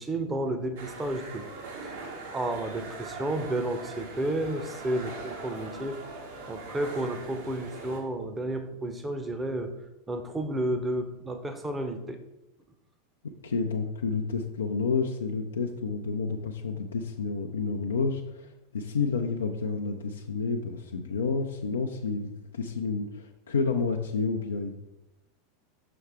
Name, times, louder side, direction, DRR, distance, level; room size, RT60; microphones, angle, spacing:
voice 1, 0.0-1.5 1.8-2.0 2.3-6.0 6.5-9.7 10.1-12.2, right 1 dB, 15° right, 7 dB, 0.8 m, -31 dB
sound 1, 0.8-8.0, right 3 dB, 65° right, 1.5 m, -41 dB
voice 2, 13.4-24.8, left 4 dB, 75° left, 3 dB, 0.4 m, -30 dB
6.2 x 5.8 x 3.5 m, 0.95 s
figure-of-eight pair, 85°, 0 cm